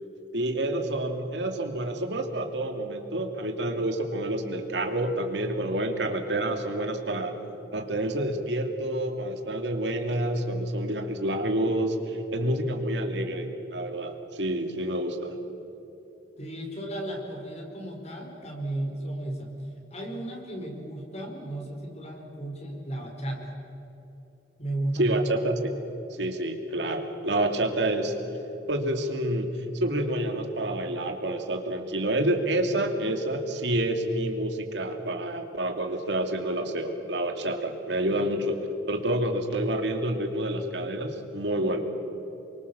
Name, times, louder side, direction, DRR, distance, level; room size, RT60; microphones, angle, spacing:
voice 1, 0.3-7.4 7.7-15.3 25.0-25.6 26.2-28.1 28.7-38.6 38.9-41.9, right 1 dB, 80° right, 4 dB, 2.7 m, -28 dB
voice 2, 16.4-19.5 19.9-23.5 24.6-25.4, right 1 dB, 40° left, 2 dB, 4.9 m, -34 dB
29.0 x 24.0 x 7.1 m, 3.0 s
head